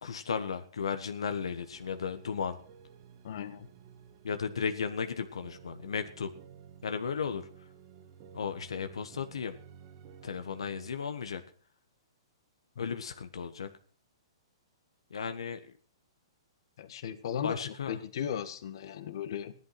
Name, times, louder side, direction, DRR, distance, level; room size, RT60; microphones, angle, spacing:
voice 1, 0.0-2.6 4.2-6.3 6.8-7.4 8.3-9.5 10.2-11.4 12.8-13.7 15.1-15.7 17.4-18.0, left 6 dB, 90° left, 8 dB, 1.4 m, -35 dB
sound 1, 1.3-10.9, right 8 dB, 40° right, 1.7 m, -54 dB
voice 2, 3.2-3.7 12.7-12.9 16.8-19.5, left 9 dB, 60° left, 11 dB, 1.6 m, -37 dB
16.0 x 11.5 x 5.9 m, 0.43 s
hypercardioid pair, 150°, 3 cm